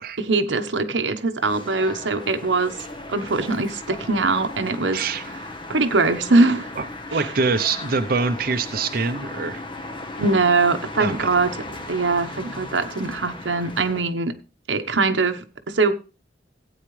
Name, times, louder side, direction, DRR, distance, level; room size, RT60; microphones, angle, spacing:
voice 1, 0.2-2.8 3.1-5.0 5.7-6.7 7.1-7.3 10.2-11.6 11.9-14.3 14.7-15.9, right 3 dB, 90° right, 8 dB, 1.1 m, -22 dB
sound 1, 1.4-14.0, left 2 dB, 30° left, 1.2 m, -36 dB
voice 2, 4.9-5.2 6.8-6.9 7.1-9.6 11.0-11.3, right 4 dB, 55° right, 6 dB, 0.8 m, -24 dB
16.0 x 8.9 x 3.3 m, 0.33 s
head